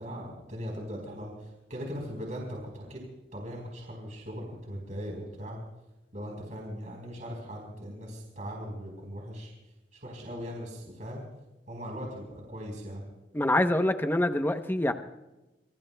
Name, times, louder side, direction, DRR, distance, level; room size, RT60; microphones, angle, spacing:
voice 1, 0.0-3.1 3.3-5.6 6.1-9.5 9.9-11.2 11.7-13.1, equal, 45° right, 0 dB, 4.3 m, -39 dB
voice 2, 13.3-14.9, left 1 dB, 10° left, 8 dB, 0.8 m, -25 dB
26.5 x 24.0 x 2.3 m, 1.0 s
head